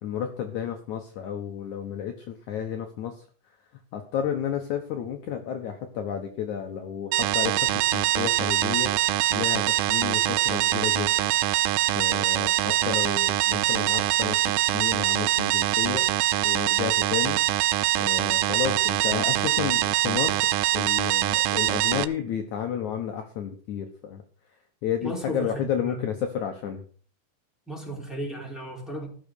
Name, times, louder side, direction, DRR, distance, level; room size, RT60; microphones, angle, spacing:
voice 1, 0.0-3.2 3.9-11.3 11.9-14.4 14.7-16.1 16.4-17.4 18.0-20.4 20.7-24.2 24.8-26.8, left 9 dB, 75° left, 5 dB, 1.8 m, -31 dB
sound 1, 7.1-22.1, right 15 dB, 85° right, 2.9 m, -24 dB
voice 2, 25.0-26.0 27.7-29.1, equal, ahead, -1 dB, 3.4 m, -35 dB
16.0 x 6.5 x 6.5 m, 0.44 s
omnidirectional pair, 5.0 m